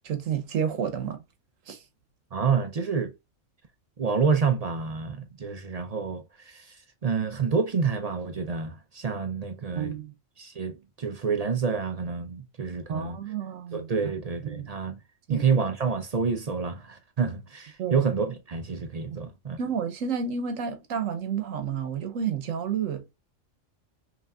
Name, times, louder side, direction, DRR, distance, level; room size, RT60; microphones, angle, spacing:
voice 1, 0.0-1.2 1.7-1.8 9.8-10.1 12.9-13.9 14.4-14.7 15.3-15.5 17.8-18.0 19.6-23.0, right 7 dB, 85° right, 1.2 m, -30 dB
voice 2, 2.3-3.1 4.0-10.0 10.4-13.2 13.7-15.0 15.3-19.6, right 5 dB, 50° right, 0.5 m, -28 dB
5.4 x 2.8 x 2.3 m
omnidirectional pair, 1.3 m